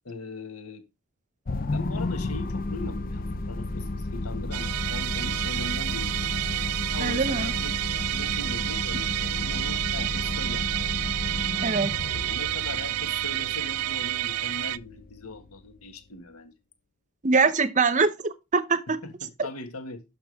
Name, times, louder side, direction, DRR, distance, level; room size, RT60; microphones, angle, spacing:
voice 1, 0.1-0.8 1.7-6.3 6.9-10.7 12.1-16.5 18.9-20.0, left 2 dB, 80° left, 1.9 m, -40 dB
sound 1, 1.5-15.9, left 2 dB, 40° left, 0.6 m, -33 dB
Musical instrument, 4.5-14.8, right 15 dB, 80° right, 0.4 m, -29 dB
voice 2, 7.0-7.5 11.6-11.9 17.2-19.0, right 4 dB, 35° right, 0.8 m, -23 dB
12.0 x 6.0 x 3.5 m
head